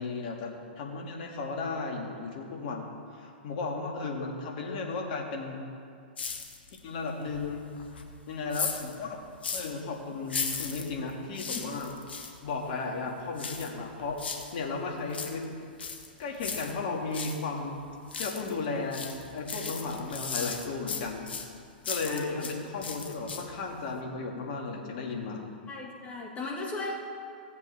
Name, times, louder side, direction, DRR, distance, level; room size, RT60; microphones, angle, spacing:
voice 1, 0.0-5.6 6.8-7.7 8.3-9.2 9.5-11.9 12.4-14.2 14.5-15.4 16.2-17.8 18.2-21.3 21.8-25.5, left 3 dB, 55° left, 0 dB, 2.1 m, -35 dB
sound 1, 6.2-6.9 7.3-9.8 10.2-12.4 13.4-14.6 14.9-17.4 17.8-18.6 18.9-22.6 22.8-23.6 24.0-24.1, left 5 dB, 80° left, 1.2 m, -37 dB
voice 2, 22.0-22.5 25.7-26.9, left 3 dB, 25° left, -2 dB, 1.9 m, -37 dB
16.0 x 8.2 x 3.5 m, 2.4 s
hypercardioid pair, 110°, 6 cm